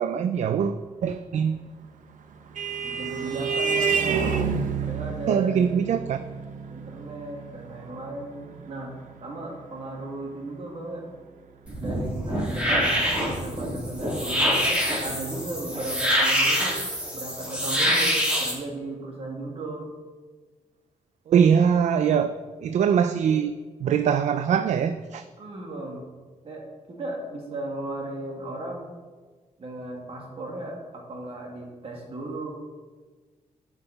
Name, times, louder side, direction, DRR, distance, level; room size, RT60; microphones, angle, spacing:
voice 1, 0.0-1.6 5.3-6.2 21.3-22.3 22.6-23.5 23.8-25.2, right 7 dB, 65° right, 10 dB, 0.4 m, -22 dB
Vehicle horn car horn honking, 1.9-10.9, right 6 dB, 80° right, 0.8 m, -30 dB
voice 2, 2.8-4.2 4.8-5.7 6.7-11.0 11.8-14.8 15.0-19.9 25.4-26.0 26.4-28.9 29.6-32.5, right 2 dB, 50° right, 0 dB, 2.0 m, -36 dB
sound 1, 11.7-18.5, equal, 10° right, 2.6 m, -25 dB
11.0 x 5.8 x 4.0 m, 1.4 s
wide cardioid pair, 135°, 13 cm